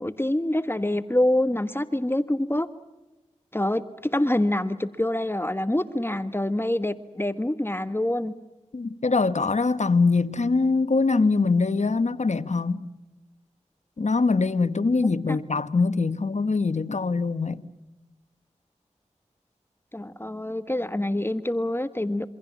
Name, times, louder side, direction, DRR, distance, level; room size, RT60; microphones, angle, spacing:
voice 1, 0.0-2.7 3.5-8.3 15.3-15.4 19.9-22.3, left 1 dB, 20° left, 1.5 m, -26 dB
voice 2, 8.7-12.9 14.0-17.7, left 4 dB, 70° left, 1.4 m, -23 dB
27.5 x 25.5 x 7.4 m
cardioid pair, 40°, 13 cm